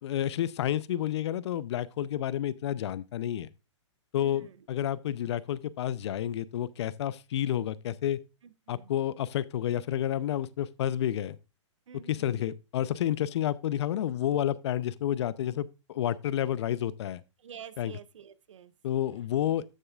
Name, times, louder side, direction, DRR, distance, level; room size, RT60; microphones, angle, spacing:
voice 1, 0.0-3.5 4.1-8.2 8.7-11.4 12.1-17.2 17.8-17.9 18.8-19.6, left 11 dB, 60° left, 0.6 m, -30 dB
voice 2, 4.1-4.7 8.4-8.9 11.9-12.5 17.4-18.7, right 8 dB, 75° right, 0.9 m, -49 dB
13.0 x 6.7 x 2.4 m
hypercardioid pair, 125°, 16 cm